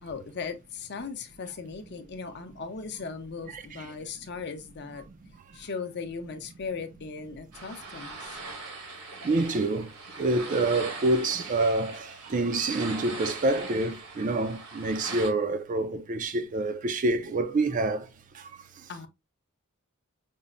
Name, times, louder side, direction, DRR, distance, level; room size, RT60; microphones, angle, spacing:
voice 1, 0.0-8.4 18.9-19.1, left 5 dB, 50° left, 0.6 m, -38 dB
voice 2, 3.5-3.9 9.2-9.9 10.2-18.1 18.3-18.5, right 2 dB, 35° right, 0.4 m, -27 dB
sound 1, 7.5-15.3, right 3 dB, 80° right, 1.4 m, -41 dB
5.3 x 2.0 x 2.4 m
head